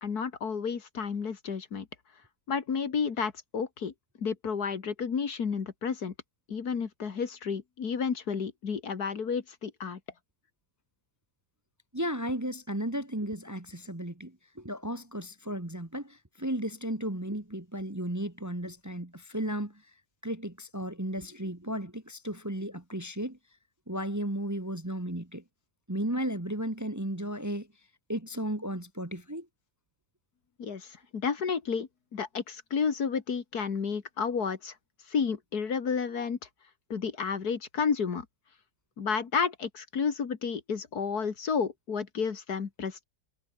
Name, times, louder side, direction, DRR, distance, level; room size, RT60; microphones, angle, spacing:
voice 1, 0.0-1.9 2.5-3.9 4.2-6.1 6.5-10.0 30.6-34.7 35.1-36.4 36.9-38.3 39.0-43.0, left 6 dB, 60° left, 2.3 m, -31 dB
voice 2, 11.9-19.7 20.2-23.4 23.9-25.4 25.9-27.7 28.1-29.5, right 1 dB, 10° right, 1.4 m, -34 dB
omnidirectional pair, 1.9 m